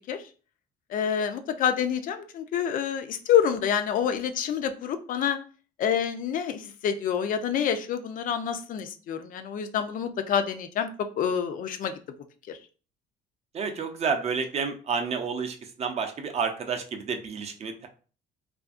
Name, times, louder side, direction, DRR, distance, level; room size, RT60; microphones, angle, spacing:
voice 1, 0.9-5.4 5.8-10.9 11.2-11.9 12.5-12.6, left 8 dB, 55° left, 9 dB, 0.4 m, -27 dB
voice 2, 13.5-17.9, right 5 dB, 40° right, 5 dB, 0.5 m, -30 dB
2.6 x 2.5 x 2.4 m, 0.38 s
cardioid pair, 110°, 17 cm